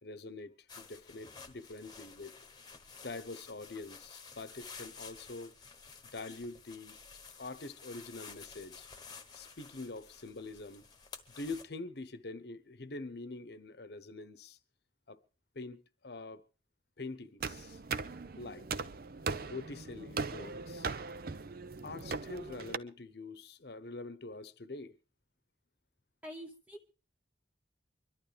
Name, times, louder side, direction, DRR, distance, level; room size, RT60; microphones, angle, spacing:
voice 1, 0.0-2.4 3.0-5.5 6.1-7.0 7.4-8.9 9.3-10.9 11.4-14.6 15.1-15.2 15.5-16.4 17.0-17.8 18.4-18.8 19.4-20.9 21.8-25.0, left 3 dB, 60° left, 1.0 m, -45 dB
sound 1, 0.7-11.6, left 5 dB, 25° left, 1.2 m, -52 dB
sound 2, 17.4-22.8, right 4 dB, 55° right, 0.7 m, -39 dB
voice 2, 26.2-26.9, equal, 10° right, 0.8 m, -46 dB
25.0 x 12.0 x 3.4 m
head